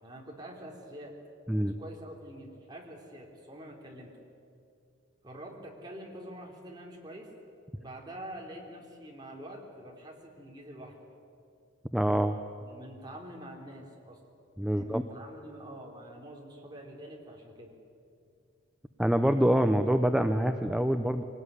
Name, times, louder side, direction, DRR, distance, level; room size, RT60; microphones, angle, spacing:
voice 1, 0.0-1.1 1.6-4.2 5.2-7.3 7.8-11.0 12.6-14.2 14.7-17.8, right 1 dB, 20° right, -1 dB, 3.7 m, -46 dB
voice 2, 11.9-12.4 14.6-15.0 19.0-21.2, equal, 5° right, 7 dB, 0.7 m, -25 dB
23.5 x 19.0 x 9.8 m, 2.5 s
head